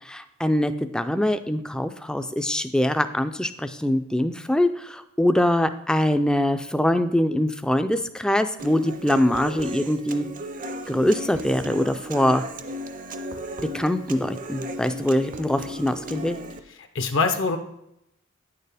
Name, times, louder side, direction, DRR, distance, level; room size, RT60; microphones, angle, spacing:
voice 1, 0.1-10.3 10.9-12.4 13.7-16.4, left 1 dB, 5° left, 9 dB, 0.3 m, -23 dB
Human voice / Acoustic guitar, 8.6-16.6, equal, 40° right, 0.6 m, -35 dB
voice 2, 16.7-17.6, left 4 dB, 65° left, 6 dB, 0.6 m, -24 dB
9.1 x 6.7 x 3.4 m, 0.81 s
head